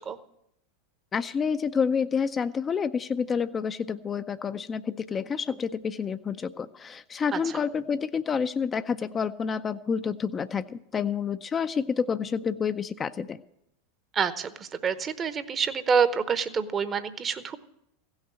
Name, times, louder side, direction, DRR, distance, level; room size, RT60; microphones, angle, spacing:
voice 1, 1.1-13.4, left 6 dB, 25° left, 10 dB, 0.4 m, -29 dB
voice 2, 14.1-17.6, right 6 dB, 30° right, 13 dB, 0.8 m, -27 dB
15.5 x 6.5 x 8.2 m, 0.81 s
hypercardioid pair, 90°, 0 cm